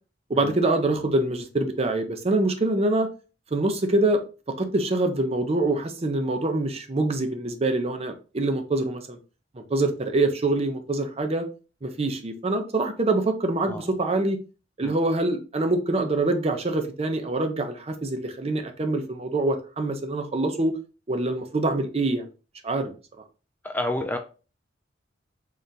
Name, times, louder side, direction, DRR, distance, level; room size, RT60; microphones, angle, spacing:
voice 1, 0.3-3.1 3.5-4.2 4.6-9.2 9.7-11.5 11.8-14.4 14.8-20.7 21.1-22.2 22.6-22.9, right 2 dB, 35° right, 0.6 m, -25 dB
voice 2, 13.7-14.1 14.8-14.9 23.6-24.2, left 1 dB, 10° left, 0.3 m, -30 dB
3.8 x 3.3 x 2.7 m
head